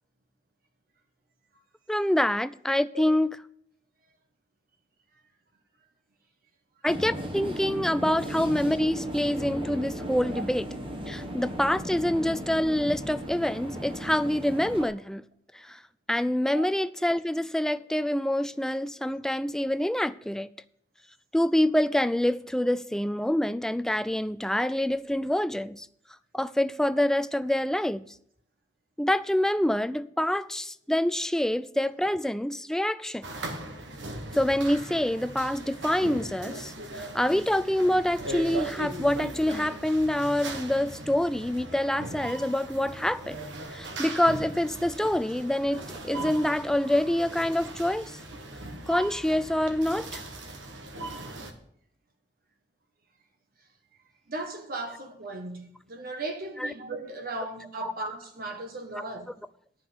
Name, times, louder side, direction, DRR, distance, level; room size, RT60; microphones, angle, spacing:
voice 1, 1.9-3.3 6.8-10.6 11.1-15.2 15.5-15.8 16.1-20.5 21.3-25.9 26.3-28.1 29.0-33.2 34.3-43.4 43.7-48.2 48.9-50.2 56.6-56.7 57.8-57.9 59.0-59.1, left 1 dB, 5° left, 0.3 m, -26 dB
sound 1, 6.9-14.8, right 1 dB, 30° right, 1.2 m, -36 dB
sound 2, 33.2-51.5, right 2 dB, 85° right, 1.6 m, -39 dB
voice 2, 54.3-59.3, right 2 dB, 55° right, 1.3 m, -37 dB
10.5 x 5.8 x 8.3 m
head